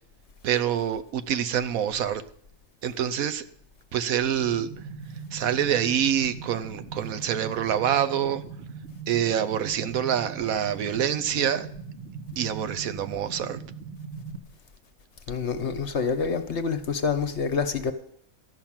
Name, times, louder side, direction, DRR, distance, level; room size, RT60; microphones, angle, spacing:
voice 1, 0.4-2.2 2.8-3.5 3.9-4.7 5.3-8.4 9.1-11.7 12.4-13.6, right 9 dB, 80° right, 1.2 m, -26 dB
sound 1, 4.4-14.4, right 5 dB, 55° right, 1.4 m, -40 dB
voice 2, 15.3-17.9, left 5 dB, 55° left, 1.2 m, -27 dB
13.0 x 5.8 x 8.7 m
omnidirectional pair, 1.4 m